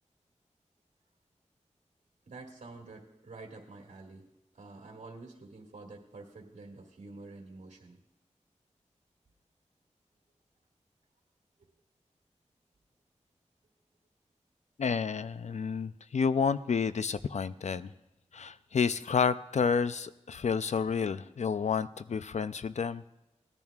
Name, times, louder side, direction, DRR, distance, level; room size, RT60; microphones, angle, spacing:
voice 1, 2.3-4.3 4.5-8.0, right 3 dB, 75° right, -1 dB, 1.9 m, -48 dB
voice 2, 14.8-17.9 18.3-23.0, left 6 dB, 70° left, 14 dB, 0.4 m, -30 dB
18.5 x 10.5 x 2.4 m, 0.95 s
wide cardioid pair, 65°, 12 cm